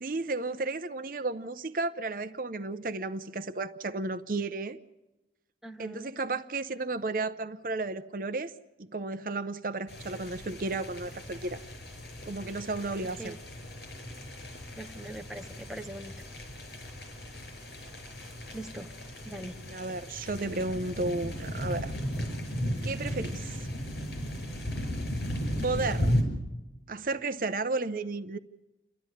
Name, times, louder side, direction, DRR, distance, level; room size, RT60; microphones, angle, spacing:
voice 1, 0.0-4.8 5.8-8.5 8.8-11.6 12.3-13.3 19.4-21.9 22.8-23.7 25.6-26.2 26.9-28.4, right 3 dB, 50° right, 0.7 m, -33 dB
voice 2, 5.6-6.1 13.2-13.4 14.8-16.1 18.5-18.9 19.2-19.6, right 1 dB, 5° right, 1.1 m, -41 dB
sound 1, 9.9-26.2, equal, 70° left, 5.8 m, -35 dB
29.5 x 12.5 x 9.9 m
head